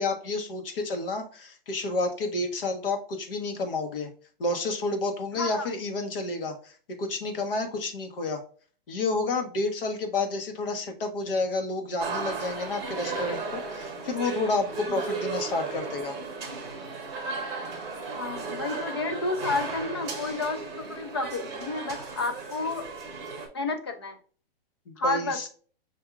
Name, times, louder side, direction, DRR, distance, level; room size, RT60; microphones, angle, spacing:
voice 1, 0.0-4.1 4.4-8.4 8.9-16.2 24.9-25.5, left 3 dB, 65° left, 6 dB, 1.2 m, -30 dB
voice 2, 5.3-5.7 18.1-22.9 23.5-24.2 25.0-25.5, left 3 dB, 25° left, 7 dB, 0.4 m, -31 dB
sound 1, 12.0-23.5, right 4 dB, 10° right, 0.8 m, -35 dB
6.0 x 2.6 x 2.4 m, 0.42 s
hypercardioid pair, 175°, 30 cm